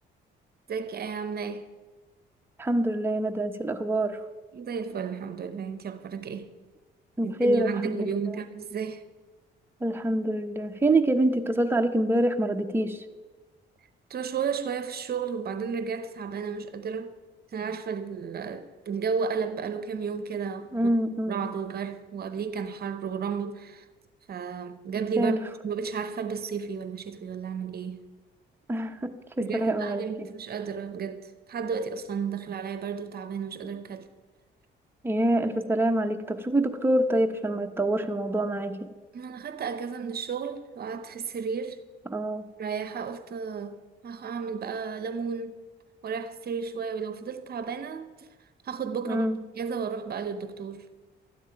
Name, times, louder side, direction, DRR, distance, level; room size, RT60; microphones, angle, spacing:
voice 1, 0.7-1.7 4.5-6.5 7.2-9.0 14.1-17.1 17.5-20.9 21.3-23.9 24.3-28.0 29.4-34.1 39.1-41.8 42.6-43.8 44.0-45.6 46.0-48.1 48.6-49.3 49.6-50.9, right 6 dB, 50° right, 0.8 m, -33 dB
voice 2, 2.6-4.2 7.2-8.1 9.8-13.0 20.7-21.4 25.2-25.4 28.7-30.3 35.0-38.9 42.1-42.5 49.0-49.4, right 1 dB, 10° right, 0.9 m, -26 dB
12.5 x 9.7 x 4.6 m
cardioid pair, 90°, 20 cm